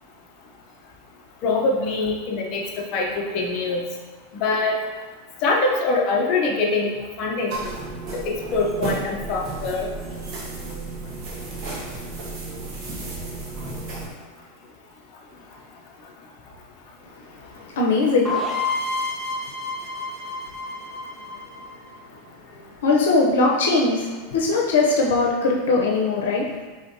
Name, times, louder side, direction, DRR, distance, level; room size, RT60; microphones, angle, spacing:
voice 1, 1.4-2.6 2.9-3.9 4.4-4.7 5.4-7.7 8.2-9.9, left 3 dB, 40° left, -2 dB, 0.7 m, -23 dB
sound 1, 7.5-14.1, right 3 dB, 40° right, 1.2 m, -33 dB
voice 2, 17.8-18.3 22.8-26.6, left 3 dB, 90° left, -1 dB, 0.7 m, -20 dB
sound 2, 18.2-22.0, left 3 dB, ahead, 0.8 m, -29 dB
5.0 x 3.6 x 2.7 m, 1.3 s
supercardioid pair, 150°, 0 cm